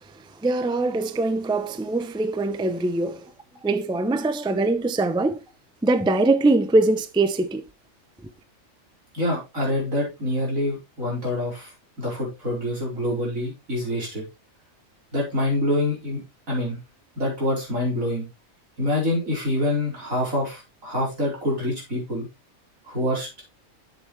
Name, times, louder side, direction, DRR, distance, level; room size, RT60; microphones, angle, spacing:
voice 1, 0.4-3.2 3.6-5.4 5.8-7.6, right 2 dB, 5° right, 0.3 m, -22 dB
voice 2, 9.1-11.7 12.0-14.2 15.1-16.2 16.5-16.8 17.2-18.3 18.8-22.3 22.9-23.4, left 1 dB, 90° right, 4.9 m, -26 dB
7.6 x 7.5 x 3.3 m
omnidirectional pair, 1.4 m